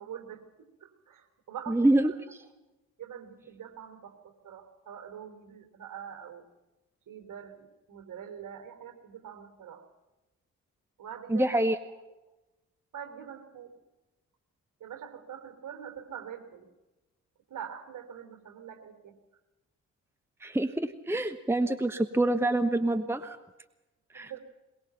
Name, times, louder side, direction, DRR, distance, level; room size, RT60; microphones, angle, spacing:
voice 1, 0.0-2.1 3.0-6.4 7.1-9.8 11.0-11.5 12.9-13.7 14.8-16.7 17.5-19.2 24.1-24.4, right 8 dB, 50° right, 6 dB, 3.7 m, -44 dB
voice 2, 1.7-2.1 11.3-11.8 20.4-23.4 24.1-24.3, right 1 dB, 5° right, 12 dB, 1.1 m, -26 dB
22.5 x 21.5 x 5.9 m, 1.0 s
figure-of-eight pair, 40°, 41 cm